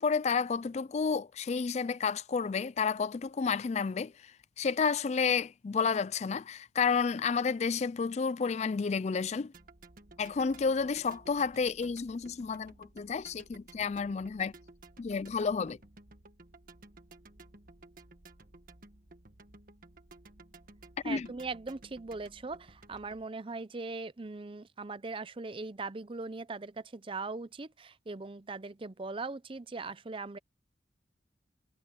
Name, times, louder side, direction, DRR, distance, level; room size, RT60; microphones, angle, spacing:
voice 1, 0.0-4.3 4.6-9.5 10.2-14.5 15.0-15.8 21.0-21.3, left 5 dB, 40° left, 0.4 m, -31 dB
sound 1, 9.5-23.3, right 2 dB, 50° right, 1.4 m, -55 dB
voice 2, 21.0-30.4, right 3 dB, 30° right, 0.6 m, -40 dB
head